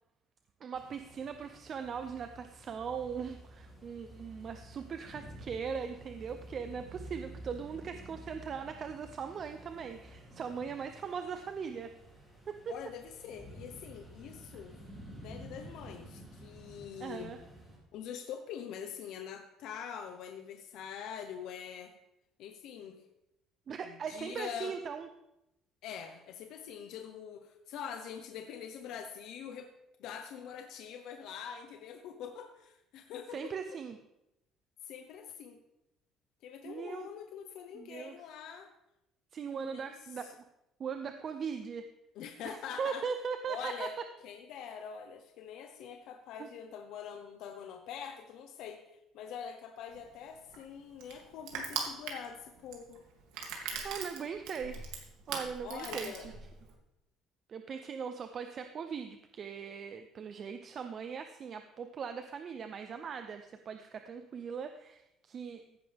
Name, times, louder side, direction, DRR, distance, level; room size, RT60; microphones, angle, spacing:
voice 1, 0.6-11.9 12.5-12.8 17.0-17.4 23.7-25.1 33.3-34.0 36.6-37.1 37.7-38.2 39.3-40.4 40.8-41.9 42.4-43.9 46.4-46.5 53.8-54.9 55.3-56.3 57.5-65.6, right 6 dB, 30° right, 8 dB, 0.5 m, -40 dB
sound 1, 0.7-17.8, right 1 dB, 5° right, 2.9 m, -51 dB
voice 2, 12.7-14.7 15.2-17.3 17.9-21.9 22.4-23.0 23.8-24.8 25.8-29.7 30.0-33.5 34.8-35.6 36.4-38.7 39.6-39.9 40.2-40.3 42.2-43.0 43.5-43.9 44.2-48.8 49.1-53.0 55.6-56.3, left 8 dB, 60° left, 5 dB, 0.9 m, -44 dB
Crushing, 49.9-56.7, right 6 dB, 90° right, 2.6 m, -41 dB
15.0 x 10.5 x 3.5 m, 0.88 s
cardioid pair, 170°, 0 cm